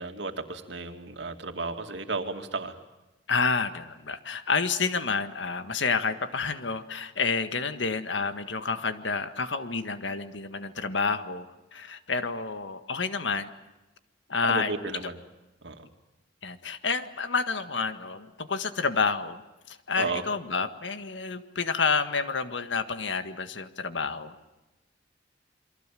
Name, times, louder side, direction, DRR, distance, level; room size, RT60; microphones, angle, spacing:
voice 1, 0.0-2.8 14.5-15.2 15.6-15.9 20.0-20.2, right 3 dB, 70° right, 6 dB, 2.5 m, -33 dB
voice 2, 3.3-13.5 14.3-14.7 16.4-19.4 19.7-24.4, left 4 dB, 85° left, 9 dB, 1.7 m, -29 dB
28.5 x 23.5 x 7.7 m, 1.0 s
head